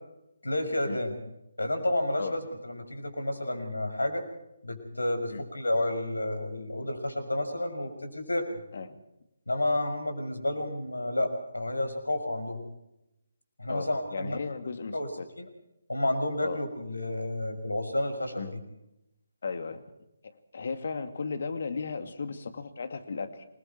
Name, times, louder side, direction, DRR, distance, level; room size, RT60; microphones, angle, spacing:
voice 1, 0.4-1.1 1.6-4.3 4.6-8.6 9.5-12.6 13.6-14.4 14.9-15.1 15.4-15.5 15.9-18.5, left 1 dB, 75° left, 6 dB, 6.1 m, -30 dB
voice 2, 13.7-15.3 16.4-16.6 18.4-18.5 19.4-19.8 20.5-23.4, left 4 dB, 50° left, 9 dB, 2.4 m, -35 dB
27.5 x 21.5 x 4.6 m, 0.88 s
figure-of-eight pair, 145°, 0 cm